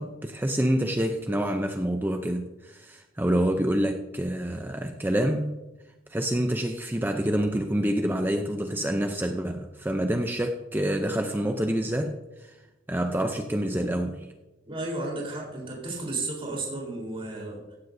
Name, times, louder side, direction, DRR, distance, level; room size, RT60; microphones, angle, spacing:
voice 1, 0.0-5.6 6.1-12.5 12.9-14.3, right 1 dB, 10° right, 5 dB, 0.6 m, -27 dB
voice 2, 14.6-17.6, right 2 dB, 30° right, -2 dB, 3.8 m, -33 dB
16.5 x 14.5 x 2.7 m, 1.1 s
head